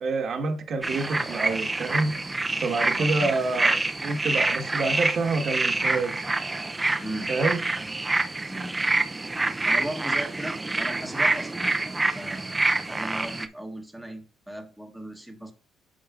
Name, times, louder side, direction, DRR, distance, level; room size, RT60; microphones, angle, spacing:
voice 1, 0.0-2.2 2.6-6.3 7.3-7.6, right 3 dB, 55° right, 1.3 m, -27 dB
sound 1, 0.8-13.5, right 2 dB, 15° right, 0.4 m, -27 dB
voice 2, 3.0-3.3 7.0-7.3 8.5-8.8 9.6-11.7 12.1-15.5, right 1 dB, ahead, 1.1 m, -37 dB
8.7 x 6.2 x 2.4 m
cardioid pair, 115°, 0 cm